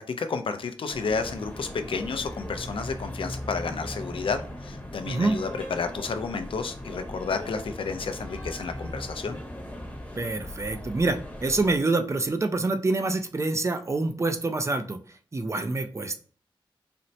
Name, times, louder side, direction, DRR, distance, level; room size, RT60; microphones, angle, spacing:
voice 1, 0.0-9.4, left 5 dB, 75° left, 8 dB, 0.4 m, -31 dB
sound 1, 0.9-11.8, left 1 dB, 15° left, 0.9 m, -38 dB
voice 2, 5.1-5.4 10.2-15.0 15.3-16.2, right 3 dB, 35° right, 7 dB, 0.4 m, -26 dB
4.2 x 2.0 x 2.7 m, 0.42 s
wide cardioid pair, 90°, 9 cm